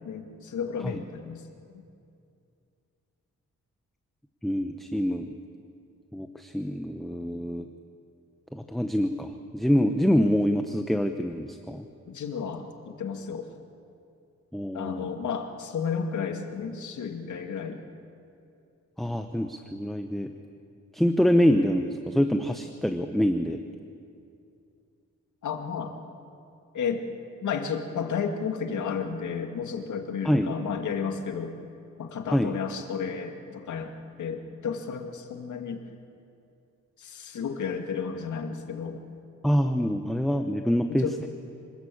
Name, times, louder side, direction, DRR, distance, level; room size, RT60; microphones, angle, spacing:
voice 1, 0.0-1.4 1.7-1.8 12.1-13.5 14.7-17.9 25.4-25.9 26.7-27.1 27.4-31.5 32.0-35.8 37.0-39.0 40.9-41.2, left 6 dB, 80° left, 5 dB, 2.2 m, -32 dB
voice 2, 4.4-5.3 6.1-7.7 8.5-11.9 14.5-15.0 19.0-20.3 20.9-23.6 30.2-30.5 32.3-32.5 39.4-41.1, equal, ahead, 6 dB, 0.8 m, -25 dB
26.0 x 19.5 x 8.6 m, 2.5 s
wide cardioid pair, 165°, 29 cm